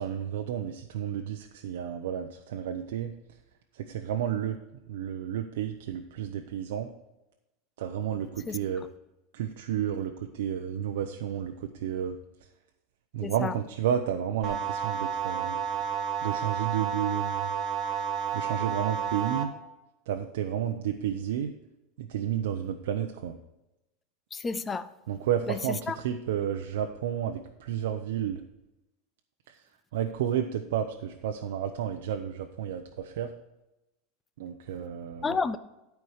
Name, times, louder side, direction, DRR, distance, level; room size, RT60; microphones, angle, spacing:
voice 1, 0.0-3.1 3.7-4.6 4.9-6.9 7.8-8.8 9.3-12.2 13.1-15.6 16.2-17.5 18.3-19.5 20.1-21.5 22.0-23.4 25.1-28.4 29.5-29.6 29.9-33.3 34.4-35.4, right 9 dB, 80° right, 5 dB, 0.7 m, -31 dB
voice 2, 13.2-13.5 24.3-24.9 25.5-25.6 25.9-26.0 35.2-35.6, left 4 dB, 10° left, 13 dB, 0.4 m, -30 dB
sound 1, 14.4-19.4, right 8 dB, 30° right, 1.4 m, -31 dB
12.5 x 4.6 x 6.4 m, 0.94 s
supercardioid pair, 180°, 0 cm